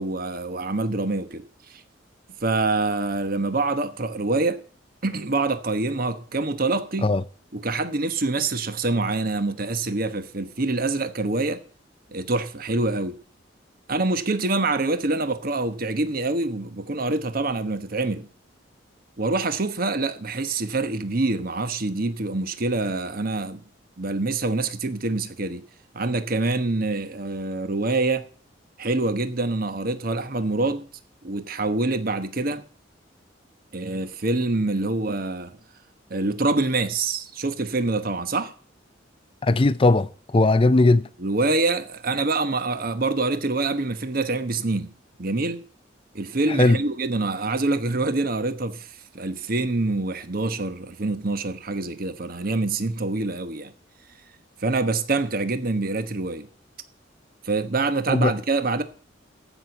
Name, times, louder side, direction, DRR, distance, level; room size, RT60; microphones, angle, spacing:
voice 1, 0.0-1.4 1.7-1.8 2.4-4.6 5.0-7.2 7.5-11.6 12.1-13.2 13.9-18.3 19.2-23.6 24.0-25.6 25.9-28.3 28.8-30.9 31.2-32.6 33.7-35.6 36.1-38.5 41.2-44.9 45.2-45.6 46.1-48.9 49.1-53.7 54.6-56.5 57.4-58.8, right 3 dB, 50° right, 1.1 m, -25 dB
voice 2, 39.4-40.1 40.3-41.1 46.6-46.8 58.1-58.3, left 2 dB, 30° left, 0.5 m, -18 dB
14.5 x 6.2 x 8.2 m
head